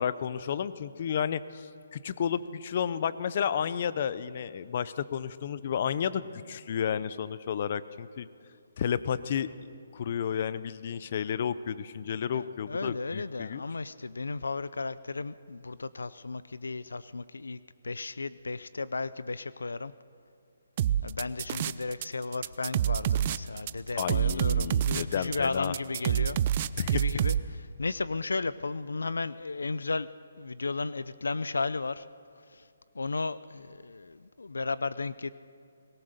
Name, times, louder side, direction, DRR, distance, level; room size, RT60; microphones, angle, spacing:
voice 1, 0.0-8.3 8.8-9.5 9.9-13.6 24.0-25.7 26.8-26.9, left 8 dB, 45° left, 16 dB, 0.7 m, -32 dB
voice 2, 12.3-19.9 21.0-32.1 32.5-32.7 32.9-35.3, left 3 dB, 90° left, 17 dB, 0.5 m, -34 dB
sound 1, 20.8-22.1 22.3-27.4, right 10 dB, 35° right, 0.5 m, -27 dB
21.0 x 19.0 x 6.7 m, 2.4 s
hypercardioid pair, 155°, 0 cm